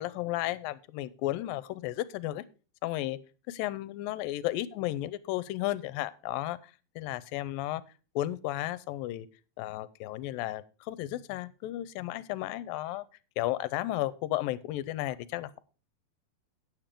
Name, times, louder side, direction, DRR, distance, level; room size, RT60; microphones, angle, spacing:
voice 1, 0.0-2.4 2.8-3.2 3.5-6.6 7.0-7.8 8.2-9.3 9.6-13.0 13.4-15.6, left 15 dB, 85° left, 16 dB, 2.3 m, -33 dB
9.4 x 7.4 x 5.0 m, 0.35 s
omnidirectional pair, 4.1 m